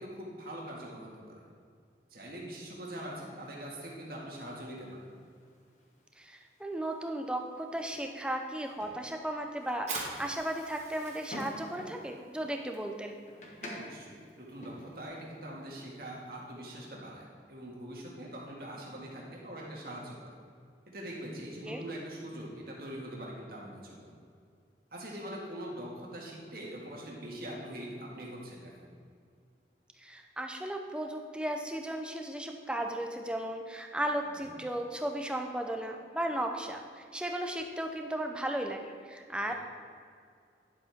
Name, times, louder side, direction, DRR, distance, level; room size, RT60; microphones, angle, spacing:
voice 1, 0.0-1.4 2.1-5.1 13.6-20.4 20.9-24.1 24.9-28.9 34.2-34.5 39.5-39.6, right 1 dB, 55° right, -3 dB, 1.9 m, -43 dB
sound 1, 4.6-15.0, left 1 dB, 40° left, 1.4 m, -51 dB
voice 2, 6.2-13.2 21.6-21.8 30.0-39.5, right 1 dB, 5° right, 3 dB, 0.6 m, -35 dB
Fire, 9.7-16.9, right 3 dB, 40° right, 1.6 m, -47 dB
10.5 x 7.6 x 3.6 m, 2.2 s
head